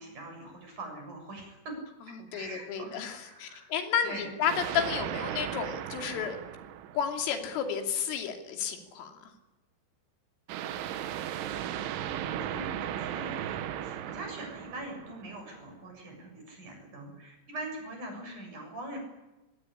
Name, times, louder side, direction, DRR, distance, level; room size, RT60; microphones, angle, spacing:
voice 1, 0.0-1.8 2.1-3.7 4.0-4.3 12.2-19.0, right 2 dB, 40° right, 3 dB, 8.5 m, -43 dB
voice 2, 2.2-6.4 7.0-9.2, left 8 dB, 85° left, 5 dB, 5.3 m, -32 dB
sound 1, 4.5-7.6 10.5-15.7, right 10 dB, 80° right, 3.7 m, -36 dB
22.0 x 18.0 x 10.0 m, 1.0 s
omnidirectional pair, 5.6 m